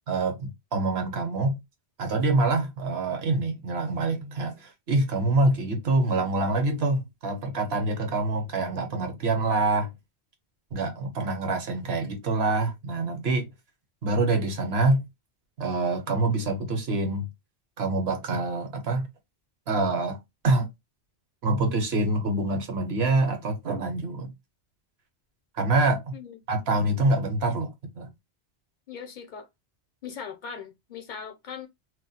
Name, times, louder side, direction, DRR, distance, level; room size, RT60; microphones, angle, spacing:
voice 1, 0.1-1.6 2.0-9.9 10.7-13.5 14.0-15.0 15.6-17.3 17.8-19.1 19.7-20.2 20.4-20.7 21.4-24.3 25.6-26.1 26.5-28.1, right 2 dB, 70° right, 1.1 m, -26 dB
voice 2, 28.9-29.5 30.0-31.7, left 6 dB, 50° left, 0.8 m, -39 dB
2.5 x 2.2 x 4.0 m
omnidirectional pair, 1.1 m